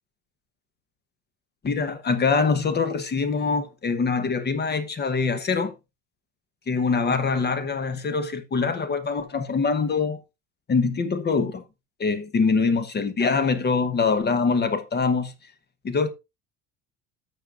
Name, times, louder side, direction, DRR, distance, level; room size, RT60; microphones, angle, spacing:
voice 1, 1.6-5.7 6.7-10.2 10.7-11.6 12.0-15.3 15.8-16.1, left 4 dB, 25° left, 1.1 m, -24 dB
13.0 x 6.8 x 2.5 m
cardioid pair, 125°, 37 cm